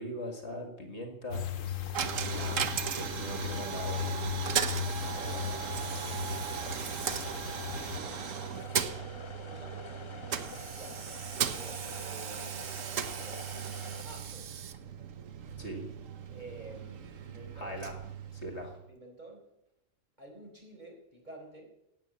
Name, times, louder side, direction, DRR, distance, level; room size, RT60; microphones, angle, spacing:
voice 1, 0.0-1.4 2.2-2.6 2.9-4.1 15.6-15.8 17.5-18.0 18.3-18.8, equal, 55° left, 4 dB, 2.3 m, -40 dB
sound 1, 1.3-8.0, left 8 dB, 70° left, 1.4 m, -37 dB
Coin (dropping), 1.9-18.9, right 8 dB, 70° right, 1.3 m, -37 dB
sound 2, 5.0-14.0, left 3 dB, 25° left, 0.8 m, -47 dB
voice 2, 5.2-11.1 11.5-12.9 13.2-14.5 16.3-17.8 18.9-19.4 20.2-21.7, right 2 dB, 30° right, 1 dB, 4.3 m, -51 dB
17.5 x 9.0 x 7.3 m, 0.85 s
omnidirectional pair, 1.4 m